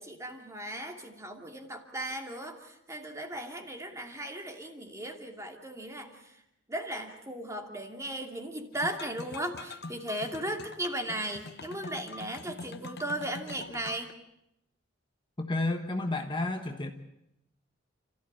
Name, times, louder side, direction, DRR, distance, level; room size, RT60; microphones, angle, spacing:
voice 1, 0.0-6.4 6.7-14.1, right 1 dB, 15° right, 4 dB, 2.5 m, -37 dB
sound 1, 8.7-14.1, left 3 dB, 55° left, 1.1 m, -44 dB
voice 2, 15.4-16.9, left 2 dB, 25° left, 5 dB, 1.2 m, -31 dB
29.5 x 14.5 x 8.7 m, 0.83 s
head